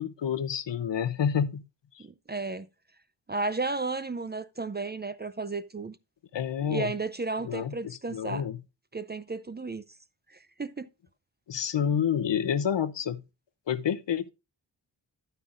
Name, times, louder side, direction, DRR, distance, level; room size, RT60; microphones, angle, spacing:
voice 1, 0.0-1.6 2.0-2.1 6.3-6.9 7.4-8.6 11.5-13.2 13.7-14.3, left 8 dB, 70° left, 0.8 m, -29 dB
voice 2, 2.0-2.7 3.3-6.0 6.7-8.4 8.9-9.9 10.3-10.9, right 3 dB, 25° right, 0.4 m, -33 dB
10.0 x 9.2 x 2.5 m
wide cardioid pair, 75°, 45 cm